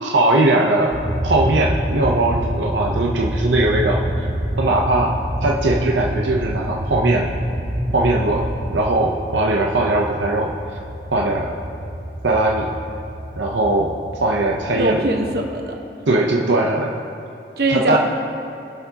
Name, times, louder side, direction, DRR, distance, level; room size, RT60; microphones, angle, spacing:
voice 1, 0.0-0.9 1.2-4.3 4.6-7.3 7.9-8.5 8.7-10.5 11.1-11.6 12.2-12.7 13.4-15.1 16.1-17.0 17.7-18.0, right 2 dB, 85° right, -1 dB, 0.8 m, -19 dB
sound 1, 0.9-8.9, equal, 15° right, 1.3 m, -27 dB
sound 2, 1.0-15.5, right 1 dB, 35° right, 0.8 m, -30 dB
voice 2, 14.8-15.8 17.6-18.0, right 1 dB, 60° right, 2 dB, 1.2 m, -21 dB
20.5 x 6.8 x 2.9 m, 2.8 s
head